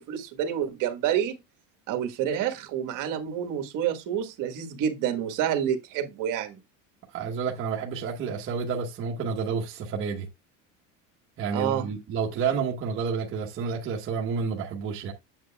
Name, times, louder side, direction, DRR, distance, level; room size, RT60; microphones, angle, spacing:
voice 1, 0.0-1.4 1.9-6.6 11.5-11.9, right 9 dB, 55° right, 1.5 m, -28 dB
voice 2, 7.1-10.3 11.4-15.1, right 5 dB, 35° right, 1.1 m, -30 dB
7.8 x 7.7 x 2.3 m
cardioid pair, 150°, 39 cm